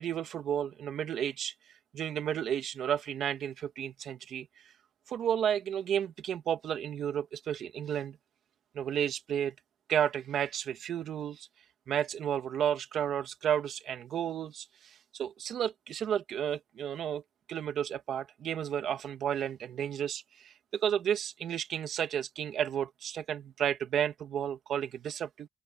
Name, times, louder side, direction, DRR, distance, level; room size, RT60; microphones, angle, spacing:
voice 1, 0.0-1.5 1.9-4.5 5.1-8.2 8.7-9.5 9.9-11.5 11.9-17.2 17.5-25.5, right 9 dB, 80° right, 2.1 m, -32 dB
open air
cardioid pair, 95°, 0 cm